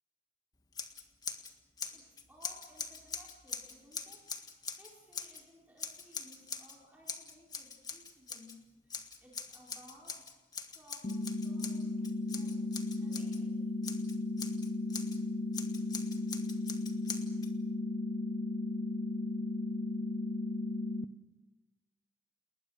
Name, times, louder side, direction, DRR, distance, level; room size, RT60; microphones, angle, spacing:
Scissors, 0.7-1.5 1.8-5.4 5.8-6.8 7.1-8.6 8.9-13.4 13.8-15.2 15.5-17.5, left 5 dB, 20° left, 1.7 m, -43 dB
voice 1, 1.9-4.2 4.8-10.3 10.6-12.6 13.0-13.7, equal, 10° right, -5 dB, 4.4 m, -59 dB
sound 1, 11.0-21.1, left 2 dB, 45° left, 0.7 m, -35 dB
30.0 x 20.5 x 6.4 m, 1.1 s
head